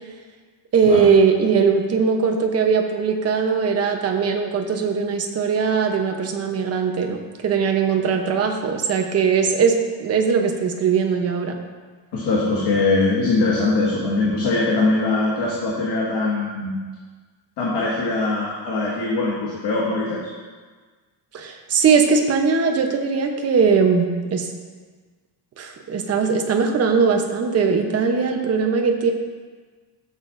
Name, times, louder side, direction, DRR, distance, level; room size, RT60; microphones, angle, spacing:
voice 1, 0.7-11.6 21.3-24.5 25.6-29.1, right 5 dB, 35° right, 3 dB, 0.9 m, -20 dB
voice 2, 12.1-16.8 17.6-20.2, left 3 dB, 65° left, -5 dB, 1.9 m, -22 dB
13.5 x 8.1 x 2.6 m, 1.4 s
cardioid pair, 170°, 43 cm